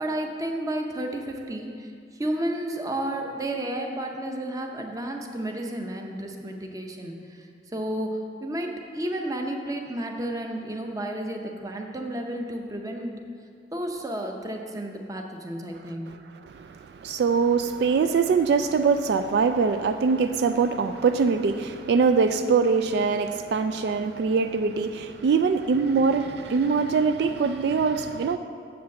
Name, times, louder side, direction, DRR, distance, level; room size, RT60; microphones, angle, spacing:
voice 1, 0.0-13.2 13.7-16.1, right 1 dB, 20° right, 3 dB, 0.7 m, -32 dB
voice 2, 16.5-28.4, right 5 dB, 70° right, 9 dB, 0.3 m, -23 dB
7.3 x 5.1 x 7.0 m, 2.4 s
head